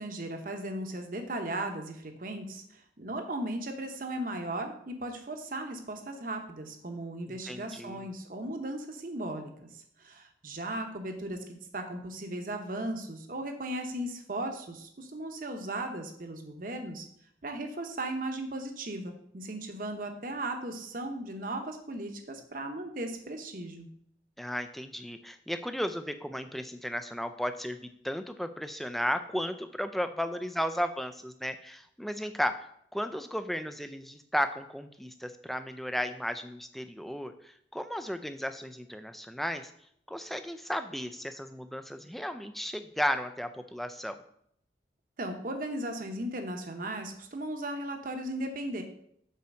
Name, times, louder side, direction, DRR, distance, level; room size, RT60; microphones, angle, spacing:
voice 1, 0.0-17.0 17.4-23.9 45.2-48.8, right 1 dB, 50° right, 5 dB, 0.9 m, -37 dB
voice 2, 7.3-8.1 24.4-27.8 28.0-32.6 32.9-39.7 40.1-44.2, equal, ahead, 9 dB, 0.4 m, -34 dB
5.7 x 4.5 x 6.3 m, 0.70 s
head